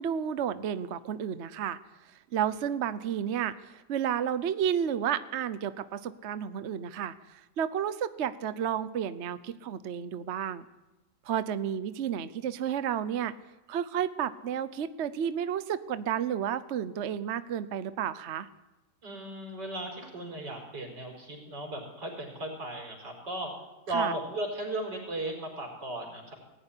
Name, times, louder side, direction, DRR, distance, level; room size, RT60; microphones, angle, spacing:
voice 1, 0.0-1.8 2.0-10.6 11.2-13.3 13.7-18.5 23.9-24.1, right 9 dB, 50° right, 13 dB, 0.9 m, -31 dB
voice 2, 19.0-23.5 23.9-26.3, right 1 dB, 90° right, 2 dB, 5.3 m, -36 dB
19.5 x 15.0 x 9.9 m, 1.0 s
omnidirectional pair, 1.8 m